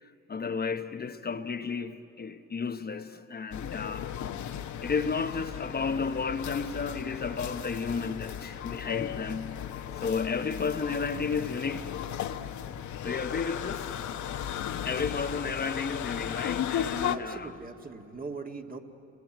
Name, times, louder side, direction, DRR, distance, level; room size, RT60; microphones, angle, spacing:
voice 1, 0.0-4.1 4.8-11.9 13.0-13.9 14.8-17.5, left 5 dB, 30° left, 0.9 m, -33 dB
sound 1, 3.5-17.2, left 9 dB, 70° left, 1.1 m, -36 dB
voice 2, 17.1-18.8, right 4 dB, 30° right, 1.8 m, -41 dB
30.0 x 21.0 x 9.0 m
cardioid pair, 90°, 30 cm